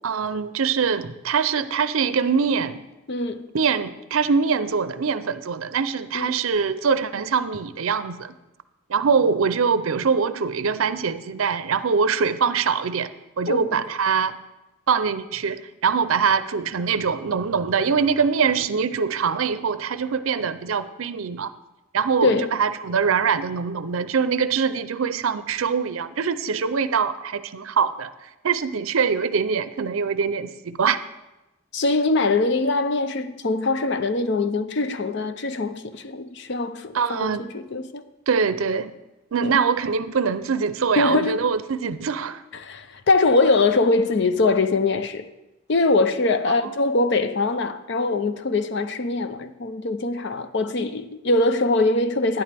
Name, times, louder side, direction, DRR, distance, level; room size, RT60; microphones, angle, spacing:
voice 1, 0.0-2.9 3.5-8.3 8.9-13.1 13.4-14.3 14.9-21.5 21.9-31.0 36.9-37.5 38.3-38.9 39.3-42.4 46.5-46.7, right 6 dB, 75° right, 0.5 m, -23 dB
voice 2, 3.1-3.5 6.1-6.4 13.5-13.8 22.2-22.5 31.7-38.1 39.3-39.5 41.0-41.4 42.5-45.3 45.7-52.4, left 3 dB, 55° left, 0.5 m, -22 dB
12.0 x 10.5 x 3.4 m
head